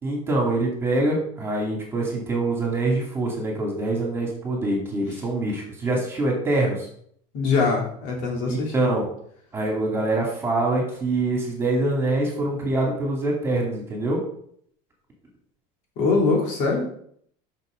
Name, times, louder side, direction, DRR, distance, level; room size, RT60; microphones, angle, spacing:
voice 1, 0.0-6.9 8.5-9.1 9.5-14.2, right 2 dB, 15° right, -1 dB, 2.7 m, -24 dB
voice 2, 7.3-8.9 16.0-16.8, left 4 dB, 55° left, -1 dB, 3.1 m, -23 dB
6.6 x 6.2 x 6.4 m, 0.65 s
cardioid pair, 150°, 16 cm